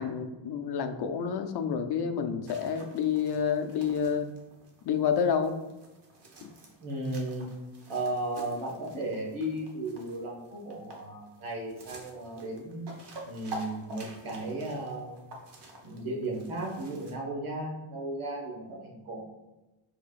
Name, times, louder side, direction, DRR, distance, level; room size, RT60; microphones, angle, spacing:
voice 1, 0.0-4.3 4.8-5.6 6.4-6.5, left 7 dB, 55° left, 8 dB, 0.6 m, -29 dB
hamster eating, 2.4-17.1, right 1 dB, 55° right, 1.1 m, -48 dB
voice 2, 6.8-7.5 7.9-12.9 13.2-15.2 15.8-19.2, right 1 dB, 85° right, -1 dB, 1.5 m, -35 dB
4.7 x 4.6 x 2.4 m, 1.0 s
cardioid pair, 100°, 48 cm